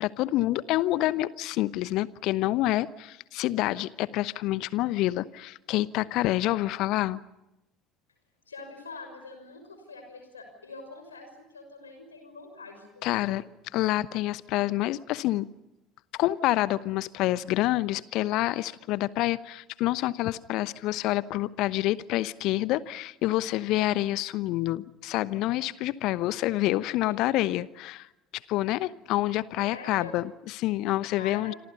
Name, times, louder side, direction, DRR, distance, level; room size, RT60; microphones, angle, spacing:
voice 1, 0.0-7.2 13.0-13.4 13.7-15.5 16.1-28.1 28.5-31.5, left 16 dB, 55° left, 18 dB, 0.9 m, -27 dB
voice 2, 8.5-13.4 27.0-27.4 29.7-30.1 31.2-31.6, left 3 dB, 80° left, 6 dB, 6.1 m, -45 dB
27.0 x 27.0 x 5.5 m, 0.92 s
figure-of-eight pair, 60°, 0 cm